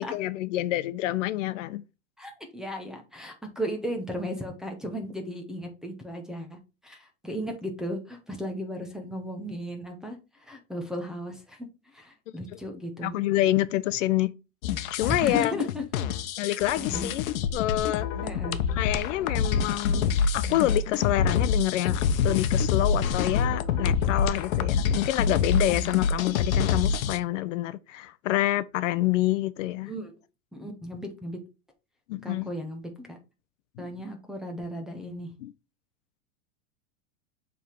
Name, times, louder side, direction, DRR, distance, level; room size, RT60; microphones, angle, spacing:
voice 1, 0.0-1.8 13.0-14.3 14.9-15.5 16.4-17.2 17.5-18.1 18.7-29.9 32.1-32.5 33.8-33.9 35.4-35.5, left 15 dB, 65° left, 0.6 m, -27 dB
voice 2, 2.2-6.6 6.8-11.6 11.9-13.2 15.0-15.8 16.4-17.1 18.2-18.6 29.8-30.1 30.5-31.4 32.2-33.2 33.8-35.3, equal, ahead, 0.7 m, -35 dB
sound 1, 14.6-27.2, left 6 dB, 85° left, 0.9 m, -26 dB
7.0 x 3.6 x 4.4 m
supercardioid pair, 160°, 41 cm